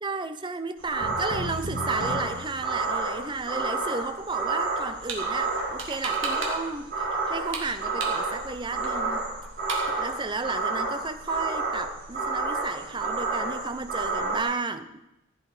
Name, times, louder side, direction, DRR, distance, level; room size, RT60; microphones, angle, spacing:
voice 1, 0.0-9.2 9.9-15.0, right 3 dB, 20° right, 10 dB, 0.6 m, -33 dB
sound 1, 0.8-14.4, right 3 dB, 40° right, 3.8 m, -30 dB
sound 2, 1.0-3.3, left 1 dB, 50° left, 2.7 m, -37 dB
sound 3, 4.8-5.2 5.6-6.7 7.0-8.5 8.8-8.9 9.1-9.2 9.4-10.0, right 4 dB, 60° right, 2.3 m, -34 dB
15.0 x 8.8 x 4.9 m, 0.93 s
head